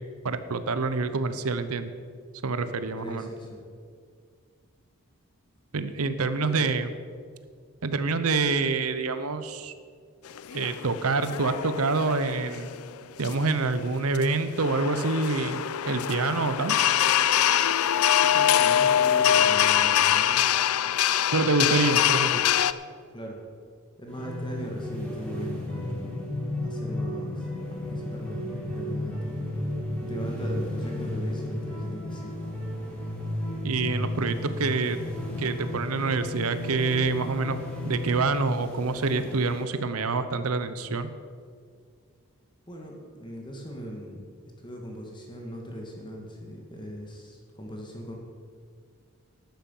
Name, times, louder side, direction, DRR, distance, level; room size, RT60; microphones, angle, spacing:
voice 1, 0.2-1.9 2.4-3.3 5.7-6.9 7.8-9.7 10.5-12.7 13.2-16.8 21.3-22.4 33.6-35.0 35.4-37.6 37.8-41.1, right 3 dB, 80° right, 12 dB, 0.8 m, -26 dB
voice 2, 2.9-3.6 6.4-6.7 18.2-20.4 23.1-23.4 24.0-26.1 26.6-29.3 29.9-32.4 42.7-44.3 44.6-48.2, equal, 20° left, 0 dB, 1.7 m, -39 dB
sound 1, 10.3-22.7, left 10 dB, 80° left, 0.4 m, -24 dB
sound 2, 24.1-39.6, left 1 dB, 5° left, 2.5 m, -33 dB
12.0 x 9.3 x 7.2 m, 2.1 s
head